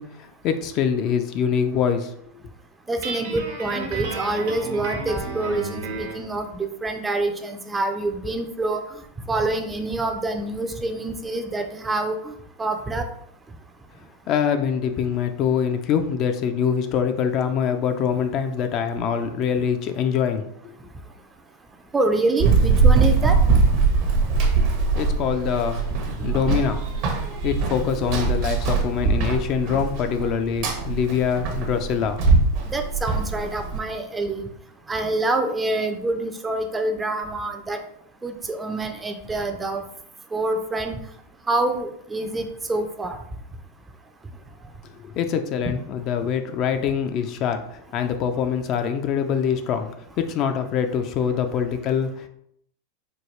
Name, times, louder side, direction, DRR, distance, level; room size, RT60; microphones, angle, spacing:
voice 1, 0.0-2.1 14.3-20.5 24.8-26.8 27.4-32.2 45.0-52.3, left 7 dB, 45° left, 7 dB, 0.4 m, -24 dB
voice 2, 2.9-8.8 9.3-12.3 12.6-13.1 21.9-23.4 32.7-34.5 34.9-37.8 38.2-39.8 40.3-41.0 41.5-43.2, right 2 dB, 15° right, 6 dB, 0.4 m, -26 dB
Guitar, 3.0-6.3, right 3 dB, 75° right, 1.0 m, -32 dB
Run, 22.4-33.8, right 4 dB, 55° right, 0.8 m, -21 dB
4.4 x 2.3 x 3.1 m, 0.71 s
hypercardioid pair, 120°, 0 cm